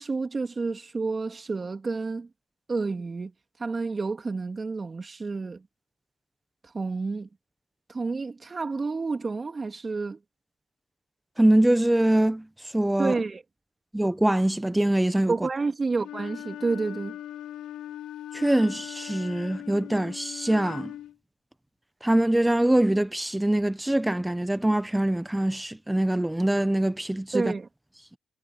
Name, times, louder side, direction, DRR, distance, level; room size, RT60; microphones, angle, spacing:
voice 1, 0.0-2.3 2.7-3.3 3.6-5.6 6.7-7.3 7.9-10.2 13.0-13.4 15.3-17.2 27.3-27.7, right 4 dB, 30° right, 2.8 m, -29 dB
voice 2, 11.4-12.5 12.7-13.2 13.9-15.3 18.3-20.9 22.0-27.5, right 1 dB, 5° right, 1.3 m, -23 dB
Wind instrument woodwind instrument, 16.0-21.1, left 12 dB, 85° left, 3.9 m, -40 dB
cardioid pair, 90°, 0 cm